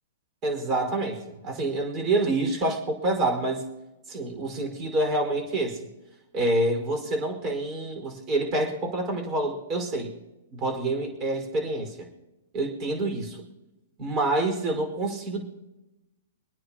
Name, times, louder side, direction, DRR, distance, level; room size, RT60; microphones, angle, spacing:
voice 1, 0.4-3.6 4.1-5.8 6.3-10.1 10.5-12.1 12.5-13.4 14.0-15.4, right 2 dB, 30° right, 3 dB, 4.8 m, -27 dB
26.5 x 9.7 x 2.9 m, 1.0 s
hypercardioid pair, 145°, 0 cm